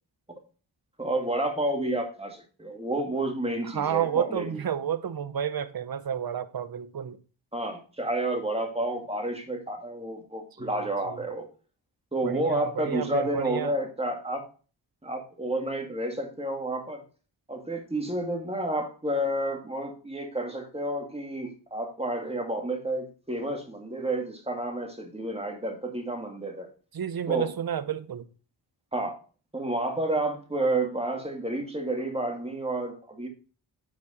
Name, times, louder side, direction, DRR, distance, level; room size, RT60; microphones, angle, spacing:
voice 1, 1.0-4.6 7.5-11.5 12.1-14.5 15.0-17.0 17.5-26.7 27.3-27.6 28.9-29.1 29.5-33.3, right 1 dB, 15° right, 2.1 m, -30 dB
voice 2, 3.6-7.2 10.6-11.2 12.2-13.7 26.9-28.3, right 8 dB, 50° right, 0.8 m, -31 dB
7.5 x 4.8 x 4.2 m
cardioid pair, 50°, 46 cm